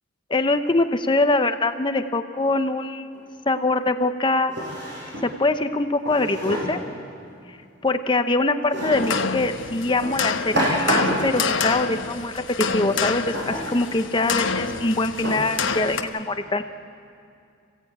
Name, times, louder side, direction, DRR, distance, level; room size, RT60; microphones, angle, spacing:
voice 1, 0.3-4.6 5.2-6.8 7.5-7.6 7.8-12.4 12.7-16.6, left 2 dB, 25° left, 9 dB, 0.7 m, -23 dB
Drawer open or close, 3.1-3.2 4.5-5.3 6.1-6.8 8.7-9.2 10.0-11.5 13.3-13.8 14.5-14.6 15.2-15.8, right 1 dB, 60° right, 8.0 m, -28 dB
sound 1, 8.9-16.0, left 5 dB, 70° left, 1.1 m, -27 dB
27.5 x 16.0 x 8.7 m, 2.4 s
head